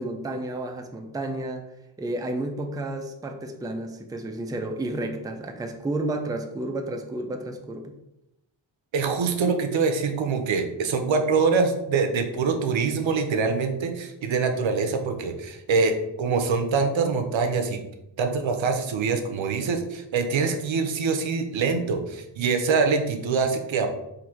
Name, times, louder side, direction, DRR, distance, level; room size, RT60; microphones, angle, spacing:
voice 1, 0.0-1.6 2.0-7.9, right 1 dB, 10° right, 5 dB, 0.4 m, -31 dB
voice 2, 8.9-17.8 18.2-23.9, right 4 dB, 80° right, 6 dB, 0.7 m, -24 dB
3.9 x 2.6 x 4.4 m, 0.88 s
wide cardioid pair, 100°, 45 cm